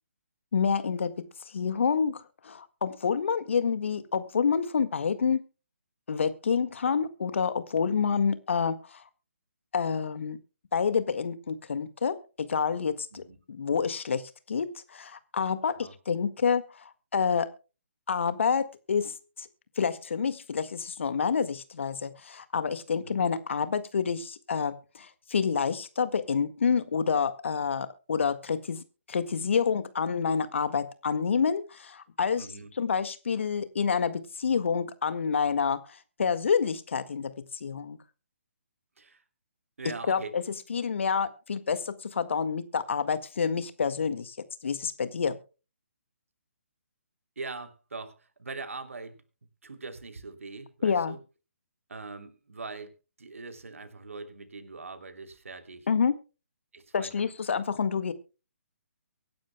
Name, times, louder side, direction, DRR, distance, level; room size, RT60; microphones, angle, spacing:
voice 1, 0.5-1.3 1.5-5.4 6.1-9.0 9.7-10.4 10.7-13.2 13.5-14.2 14.5-16.8 17.1-17.5 18.1-19.5 19.8-32.5 32.8-38.0 40.1-40.4 40.7-44.4 44.6-45.4 50.8-51.2 55.9-56.2 56.9-58.1, left 6 dB, 60° left, 12 dB, 1.7 m, -28 dB
voice 2, 32.3-32.7 39.0-39.2 39.8-40.3 47.4-49.2 49.6-51.2 51.9-52.9 53.2-55.9 56.7-57.2, right 3 dB, 70° right, 9 dB, 3.0 m, -42 dB
24.0 x 11.0 x 2.2 m, 0.32 s
figure-of-eight pair, 140°, 8 cm